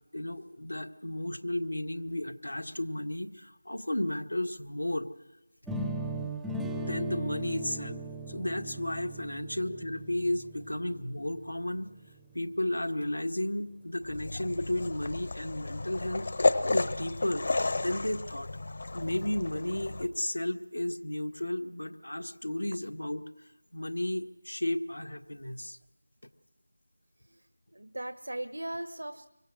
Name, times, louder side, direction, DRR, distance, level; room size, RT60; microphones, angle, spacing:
voice 1, 0.1-5.1 6.8-8.0 8.3-11.9 12.3-16.3 16.7-17.4 17.8-18.5 18.9-23.2 23.7-25.8, left 1 dB, 75° left, 7 dB, 1.8 m, -33 dB
sound 1, 5.7-11.6, right 2 dB, ahead, 0.7 m, -38 dB
sound 2, 14.0-20.1, left 3 dB, 45° left, 1.2 m, -32 dB
voice 2, 27.7-29.3, right 1 dB, 70° right, 11 dB, 1.1 m, -38 dB
25.5 x 24.0 x 6.4 m, 1.0 s
figure-of-eight pair, 165°, 0 cm